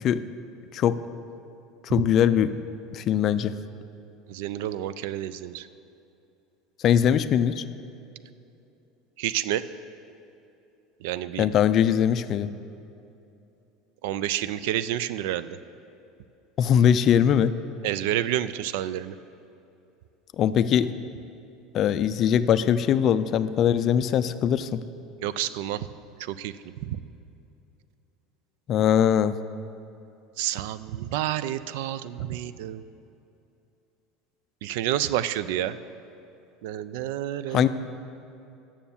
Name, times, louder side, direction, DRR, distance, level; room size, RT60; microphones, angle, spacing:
voice 1, 1.8-2.5 2.9-3.5 6.8-7.6 11.4-12.5 16.6-17.5 20.4-20.9 21.7-24.8 28.7-29.3 37.5-37.7, left 9 dB, 35° left, 12 dB, 0.3 m, -21 dB
voice 2, 4.3-5.7 9.2-9.6 11.0-11.5 14.0-15.6 17.8-19.2 25.2-25.9 26.2-26.5 26.8-27.0 30.4-32.8 34.6-35.8 36.6-37.7, right 12 dB, 75° right, 15 dB, 0.4 m, -29 dB
9.3 x 7.0 x 7.1 m, 2.7 s
cardioid pair, 160°, 0 cm